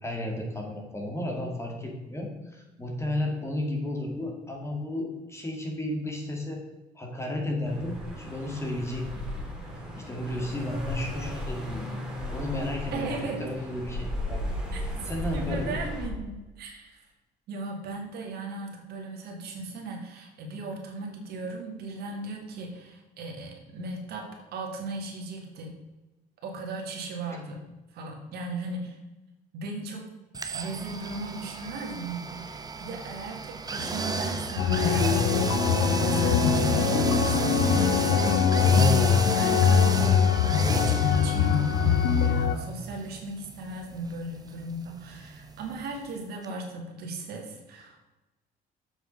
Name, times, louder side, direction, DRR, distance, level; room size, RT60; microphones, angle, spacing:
voice 1, 0.0-6.6 6.9-9.2 9.9-12.0 12.3-14.4 15.1-15.8, left 1 dB, 15° left, 1 dB, 2.1 m, -33 dB
sound 1, 7.6-16.1, left 1 dB, 5° right, 2.4 m, -35 dB
voice 2, 12.9-13.4 14.7-17.1 17.5-25.7 26.4-27.6 27.9-29.0 29.5-30.1 30.5-35.3 35.9-38.9 39.3-40.2 40.7-48.1, right 2 dB, 70° right, 1 dB, 2.2 m, -37 dB
sound 2, 30.3-46.2 46.4-46.5, right 3 dB, 20° right, 0.9 m, -32 dB
sound 3, 34.6-42.5, left 8 dB, 85° left, 0.8 m, -22 dB
7.4 x 6.2 x 5.4 m, 1.1 s
cardioid pair, 110°, 17 cm